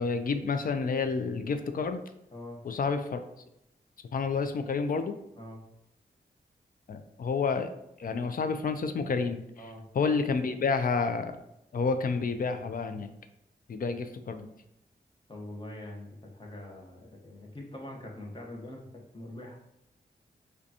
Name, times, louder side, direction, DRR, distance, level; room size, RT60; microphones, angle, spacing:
voice 1, 0.0-2.0 2.6-3.2 4.1-5.2 6.9-7.7 8.0-9.4 10.0-11.3 11.7-13.1 13.7-14.5, left 4 dB, 55° left, 9 dB, 0.4 m, -29 dB
voice 2, 2.3-2.6 5.3-5.6 9.6-9.8 15.3-19.6, left 1 dB, 30° left, 0 dB, 0.9 m, -43 dB
5.0 x 2.3 x 2.7 m, 0.83 s
wide cardioid pair, 80°, 17 cm